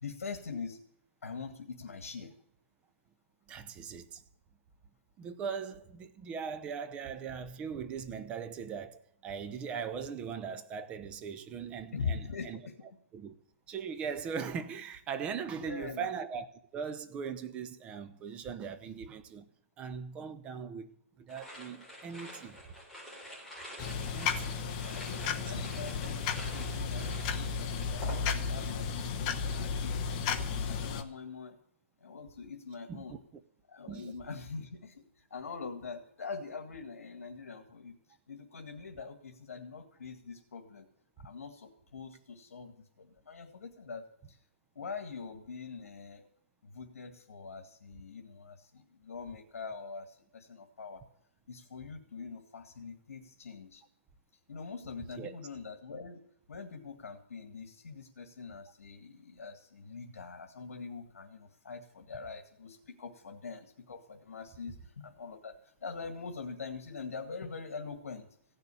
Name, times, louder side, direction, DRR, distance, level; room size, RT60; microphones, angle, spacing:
voice 1, 0.0-0.8 1.2-2.3 11.9-12.8 15.5-16.1 24.7-31.6 32.0-33.2 33.7-38.0 38.3-40.9 41.2-44.4 44.8-46.3 46.6-51.0 51.5-53.8 54.5-68.3, left 5 dB, 75° left, 2.1 m, -43 dB
voice 2, 3.5-4.2 5.2-12.6 13.1-13.3 13.7-16.5 16.7-19.5 19.8-22.6 24.1-24.6 25.2-25.7 32.9-33.2 33.9-34.1 55.2-55.4, right 6 dB, 15° right, 0.7 m, -40 dB
sound 1, 21.3-28.7 29.0-29.5, equal, ahead, 4.0 m, -48 dB
sound 2, 23.8-31.0, left 5 dB, 25° left, 1.0 m, -34 dB
16.0 x 6.8 x 9.9 m
hypercardioid pair, 160°, 8 cm